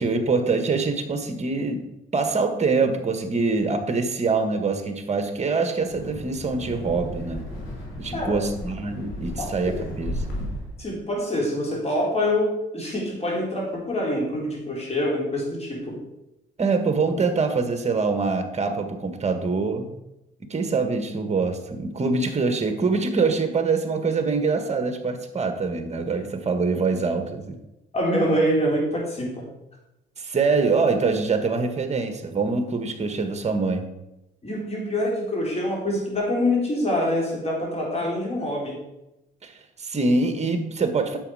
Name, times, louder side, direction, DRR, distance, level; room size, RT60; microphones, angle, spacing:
voice 1, 0.0-1.8 2.1-7.4 8.0-10.1 16.6-19.9 20.5-27.6 30.2-33.9 39.4-39.5 39.8-41.2, right 4 dB, 35° right, 7 dB, 1.6 m, -24 dB
Wind, 5.8-10.8, left 1 dB, 80° left, 3.7 m, -34 dB
voice 2, 9.4-9.8 10.8-16.0 27.9-29.5 34.4-38.8, left 1 dB, 30° left, -2 dB, 4.2 m, -25 dB
9.9 x 7.1 x 4.9 m, 0.93 s
cardioid pair, 90°, 20 cm